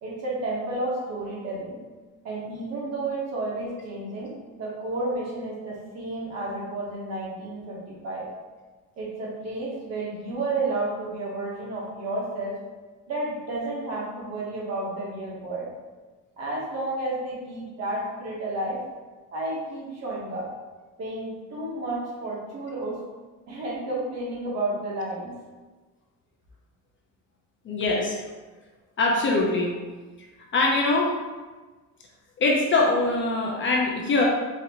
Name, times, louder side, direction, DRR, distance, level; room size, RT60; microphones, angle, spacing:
voice 1, 0.0-1.8 2.2-8.3 9.0-12.6 13.1-15.7 16.4-18.8 19.3-20.5 21.0-23.0 23.5-25.3, right 2 dB, 55° right, -4 dB, 1.0 m, -31 dB
voice 2, 27.6-28.2 29.0-29.7 30.5-31.1 32.4-34.2, left 3 dB, 40° left, -1 dB, 0.5 m, -22 dB
4.0 x 2.5 x 2.8 m, 1.3 s
cardioid pair, 175°, 32 cm